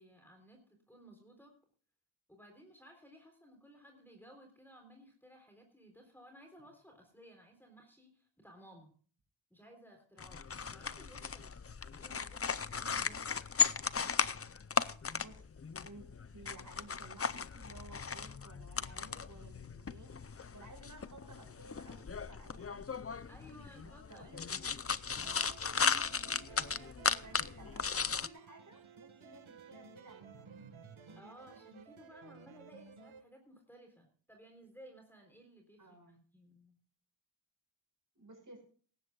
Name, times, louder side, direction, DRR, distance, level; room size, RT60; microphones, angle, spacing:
voice 1, 0.0-1.5 2.3-8.9 9.5-10.4 10.7-11.6 11.9-13.3 23.3-24.3 25.1-25.4 31.2-36.8, equal, 5° left, 2 dB, 3.6 m, -58 dB
sound 1, 10.2-28.3, left 6 dB, 30° left, 0.6 m, -36 dB
voice 2, 15.8-20.1 20.5-23.0 23.8-24.4 27.2-30.5 35.8-36.2 38.1-38.6, right 2 dB, 40° right, 3 dB, 6.5 m, -56 dB
sound 2, 25.2-33.2, right 6 dB, 85° right, 1.6 m, -55 dB
19.0 x 16.5 x 2.4 m, 0.43 s
wide cardioid pair, 100°, 47 cm